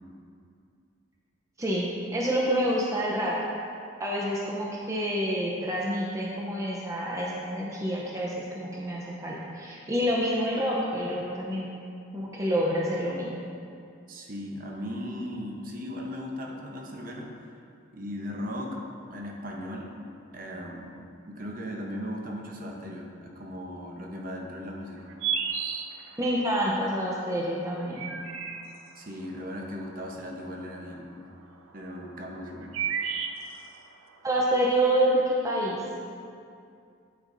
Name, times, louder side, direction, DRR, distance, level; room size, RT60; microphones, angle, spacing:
voice 1, 1.6-3.3 4.0-11.7 12.1-13.4 26.2-28.1 34.2-35.8, equal, 15° right, -4 dB, 0.6 m, -28 dB
voice 2, 14.1-17.3 17.9-18.8 19.1-20.0 20.3-21.0 21.3-25.1 29.0-31.2 31.7-32.8, equal, 45° right, 0 dB, 0.9 m, -37 dB
sound 1, 25.0-26.4 27.7-29.0 30.2-30.9 31.9-33.9, right 7 dB, 90° right, 0.5 m, -32 dB
9.2 x 7.8 x 2.6 m, 2.4 s
head